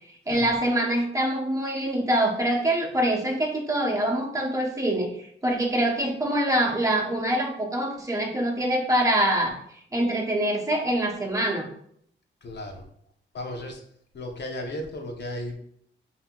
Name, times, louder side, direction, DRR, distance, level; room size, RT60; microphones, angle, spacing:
voice 1, 0.3-5.1 5.4-9.6 9.9-11.7, right 1 dB, 15° right, -1 dB, 0.9 m, -24 dB
voice 2, 12.4-12.8 13.3-13.8 14.1-15.6, left 1 dB, 60° left, 2 dB, 0.9 m, -35 dB
5.5 x 2.8 x 2.4 m, 0.67 s
cardioid pair, 85°, 20 cm